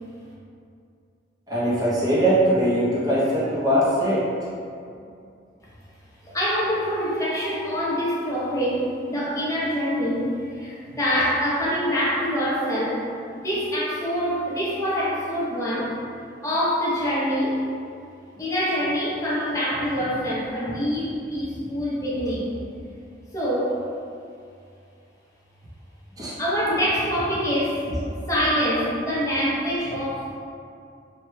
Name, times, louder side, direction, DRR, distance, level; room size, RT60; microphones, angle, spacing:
voice 1, 1.5-4.2 26.2-26.3, right 1 dB, 20° right, -9 dB, 0.6 m, -21 dB
voice 2, 6.2-13.1 13.3-15.9 16.4-17.7 18.4-22.6 23.3-23.8 26.4-27.9 28.3-30.4, equal, 15° left, -7 dB, 0.6 m, -25 dB
3.1 x 2.2 x 3.1 m, 2.4 s
head